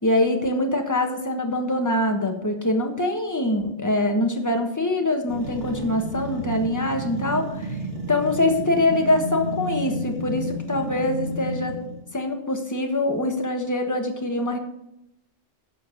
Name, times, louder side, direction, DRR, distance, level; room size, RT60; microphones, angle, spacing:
voice 1, 0.0-7.8 8.1-11.8 12.1-14.6, left 1 dB, 15° left, 3 dB, 1.4 m, -24 dB
sound 1, 5.3-12.1, right 1 dB, 85° right, 2.5 m, -32 dB
10.5 x 6.8 x 6.2 m, 0.85 s
omnidirectional pair, 1.2 m